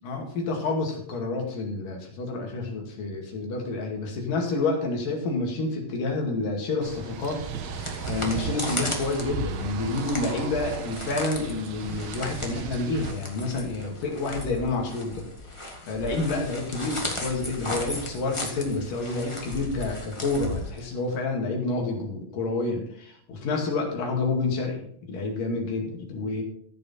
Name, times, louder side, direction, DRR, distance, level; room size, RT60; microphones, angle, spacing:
voice 1, 0.0-7.4 7.8-15.3 15.6-26.4, left 3 dB, 70° left, 1 dB, 3.9 m, -29 dB
sound 1, 6.8-13.1, right 4 dB, 85° right, 2.9 m, -35 dB
sound 2, 7.4-21.2, left 1 dB, 25° left, 0.6 m, -36 dB
14.5 x 7.3 x 4.3 m, 0.64 s
omnidirectional pair, 4.1 m